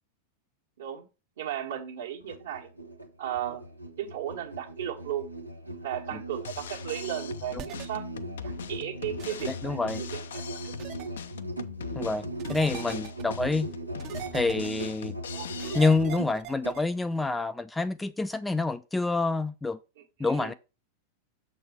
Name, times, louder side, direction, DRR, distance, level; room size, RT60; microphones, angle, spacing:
voice 1, 1.4-2.7 3.2-3.6 4.0-5.3 5.8-8.1 8.4-10.7 15.3-15.5 20.2-20.5, right 11 dB, 60° right, 1.4 m, -35 dB
Musical instrument, 2.2-16.8, right 2 dB, 90° right, 1.0 m, -39 dB
Drum kit, 6.3-15.8, left 8 dB, 65° left, 0.5 m, -41 dB
sound 1, 7.6-7.9 9.2-9.4 10.8-11.1 12.4-13.2 14.0-14.8 15.6-16.8, right 11 dB, 35° right, 0.7 m, -40 dB
voice 2, 9.5-10.0 12.0-13.7 14.3-15.1 15.7-19.8 20.2-20.5, left 3 dB, 10° left, 0.4 m, -27 dB
6.9 x 4.2 x 5.6 m
figure-of-eight pair, 90°, 0 cm